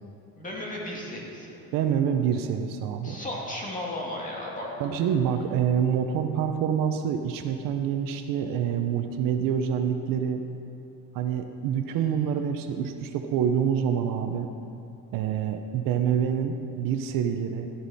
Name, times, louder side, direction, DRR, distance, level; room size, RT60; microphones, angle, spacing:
voice 1, 0.4-1.6 3.0-4.7 5.0-5.1, left 1 dB, 20° left, -3 dB, 2.2 m, -35 dB
voice 2, 1.7-3.2 4.8-10.4 11.1-14.5 15.1-17.7, right 8 dB, 60° right, 6 dB, 0.8 m, -26 dB
13.5 x 11.5 x 4.2 m, 2.6 s
cardioid pair, 160°, 37 cm